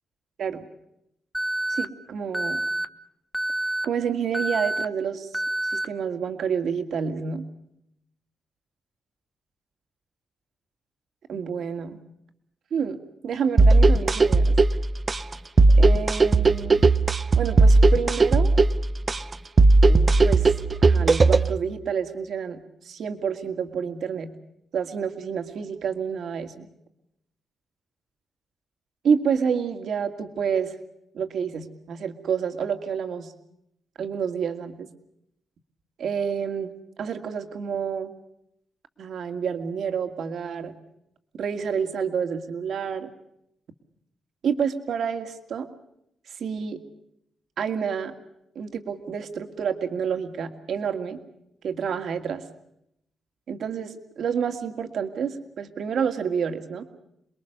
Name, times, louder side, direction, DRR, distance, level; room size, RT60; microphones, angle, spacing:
Alarm, 1.3-1.8 2.3-2.8 3.3-3.8 4.3-4.8 5.3-5.8, right 1 dB, ahead, 1.0 m, -27 dB
voice 1, 1.7-2.6 3.8-5.3 5.7-7.5 11.3-12.0 12.7-13.0 13.2-14.6 15.8-16.8 17.4-18.5 19.9-20.5 20.8-24.3 24.7-26.7 29.0-30.8 31.1-33.3 34.0-34.9 36.0-36.7 37.0-38.1 39.0-40.8 41.4-43.1 44.4-45.7 46.4-46.8 47.6-48.1 48.6-51.2 51.6-52.4 53.5-56.8, right 7 dB, 65° right, 7 dB, 2.2 m, -28 dB
sound 1, 13.6-21.6, right 3 dB, 30° right, 0.8 m, -17 dB
28.5 x 21.5 x 6.7 m, 0.78 s
cardioid pair, 120°, 0 cm